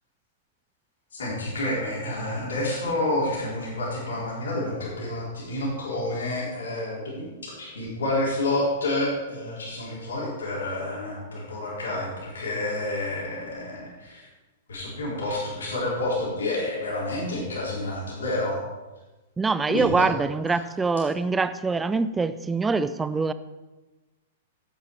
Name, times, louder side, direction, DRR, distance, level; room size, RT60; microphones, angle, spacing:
voice 1, 1.1-14.3 14.7-18.6 19.7-20.1, left 1 dB, 70° left, -5 dB, 4.0 m, -29 dB
voice 2, 19.4-23.3, right 4 dB, 10° right, 14 dB, 0.5 m, -24 dB
12.0 x 8.2 x 4.7 m, 1.1 s
figure-of-eight pair, 105°, 0 cm